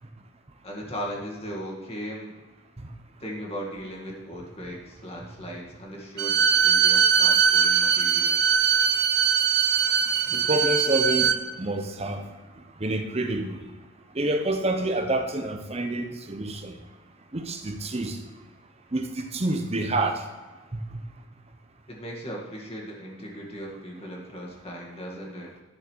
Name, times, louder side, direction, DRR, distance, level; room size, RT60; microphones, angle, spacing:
voice 1, 0.6-2.3 3.2-8.5 21.9-25.5, equal, 30° left, -2 dB, 1.9 m, -37 dB
Bowed string instrument, 6.2-11.4, right 7 dB, 55° right, 0.5 m, -21 dB
voice 2, 10.3-12.2 12.8-13.6 14.1-16.7 17.3-18.2 18.9-20.2 20.7-20.8, right 2 dB, 30° right, 6 dB, 0.8 m, -27 dB
11.0 x 6.6 x 4.7 m, 1.3 s
head